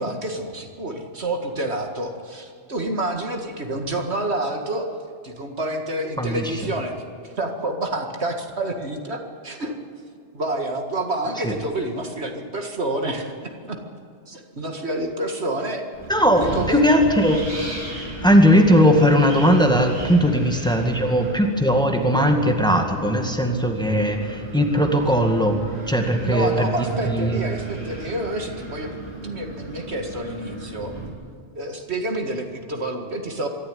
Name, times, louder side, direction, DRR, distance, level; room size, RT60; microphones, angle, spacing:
voice 1, 0.0-4.9 5.2-6.9 7.2-9.8 10.3-13.8 14.3-15.9 16.2-16.9 26.2-30.9 31.5-33.5, right 1 dB, 70° right, 4 dB, 2.3 m, -28 dB
voice 2, 6.2-6.5 11.4-11.5 16.1-17.5 18.2-26.7 27.1-27.4, equal, 5° left, 3 dB, 2.0 m, -18 dB
Wind, 15.9-31.1, right 1 dB, 45° right, 4.2 m, -35 dB
23.5 x 13.0 x 9.7 m, 2.3 s
omnidirectional pair, 1.2 m